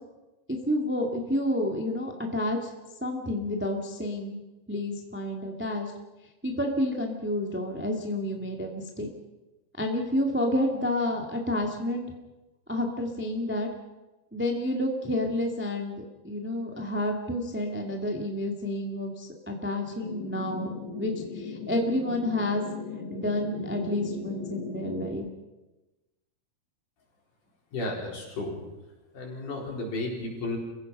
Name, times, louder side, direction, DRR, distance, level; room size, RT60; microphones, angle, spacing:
voice 1, 0.5-2.7 3.0-4.4 4.7-5.9 6.4-9.1 9.8-12.1 12.7-13.7 14.3-22.6 23.1-25.3, left 1 dB, 5° right, 2 dB, 1.1 m, -29 dB
sound 1, 20.0-25.1, left 4 dB, 75° left, 4.3 m, -38 dB
voice 2, 27.7-28.6 29.1-30.6, left 2 dB, 55° left, -1 dB, 5.9 m, -33 dB
29.5 x 16.0 x 5.5 m, 1.0 s
omnidirectional pair, 4.5 m